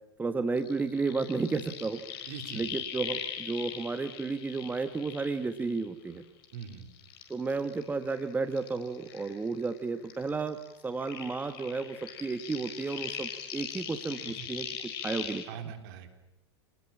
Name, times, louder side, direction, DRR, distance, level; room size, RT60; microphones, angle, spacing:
voice 1, 0.2-2.0 2.5-6.2 7.3-10.6 10.8-15.4, right 4 dB, 10° right, 9 dB, 1.4 m, -32 dB
sound 1, 0.6-6.1 6.4-9.8 10.0-15.4, left 9 dB, 60° left, 4.5 m, -41 dB
voice 2, 2.3-2.7 6.5-7.0 14.2-14.5 15.1-15.2 15.5-16.1, right 7 dB, 55° right, 7 dB, 3.9 m, -42 dB
28.0 x 20.0 x 8.7 m, 0.96 s
hypercardioid pair, 100°, 14 cm